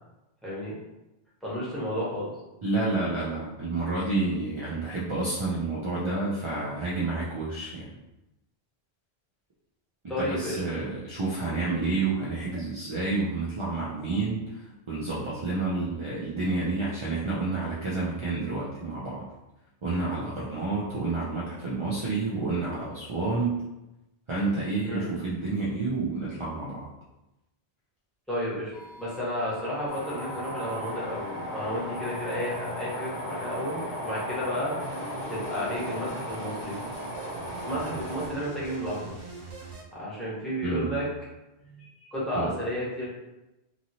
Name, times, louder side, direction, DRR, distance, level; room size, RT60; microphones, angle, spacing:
voice 1, 0.4-0.7 1.4-2.3 10.1-10.6 24.8-25.1 28.3-28.7 29.0-34.8 35.3-36.8 37.7-39.2 39.9-41.0 41.6-43.0, equal, ahead, -9 dB, 1.0 m, -32 dB
voice 2, 2.6-7.9 10.2-19.3 19.8-23.6 24.3-26.9 40.6-41.0 42.3-42.5, right 3 dB, 45° right, -6 dB, 0.4 m, -29 dB
sound 1, 28.7-34.3, equal, 60° left, 0.5 m, -50 dB
sound 2, 29.9-38.3, equal, 35° left, 0.9 m, -36 dB
sound 3, 34.8-39.8, right 3 dB, 75° right, 0.9 m, -43 dB
2.9 x 2.7 x 2.7 m, 0.96 s
omnidirectional pair, 1.1 m